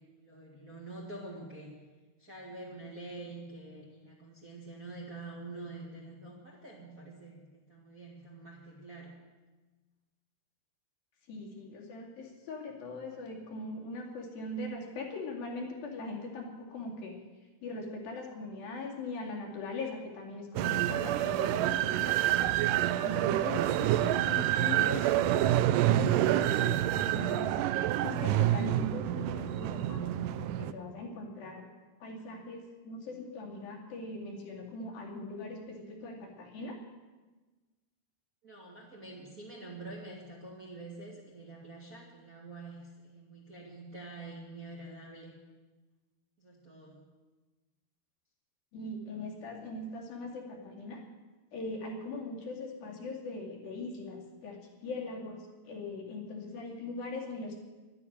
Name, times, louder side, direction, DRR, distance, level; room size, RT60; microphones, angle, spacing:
voice 1, 0.0-1.8 2.2-9.1 38.4-45.3 46.4-47.0, right 2 dB, 30° right, -3 dB, 1.7 m, -46 dB
voice 2, 11.3-17.1 17.6-22.4 23.0-27.5 28.0-31.6 32.0-36.7 48.7-51.0 51.5-57.6, left 2 dB, 70° left, -1 dB, 4.1 m, -41 dB
sound 1, 20.6-30.7, right 13 dB, 85° right, 1.9 m, -28 dB
11.5 x 10.5 x 9.9 m, 1.2 s
omnidirectional pair, 4.4 m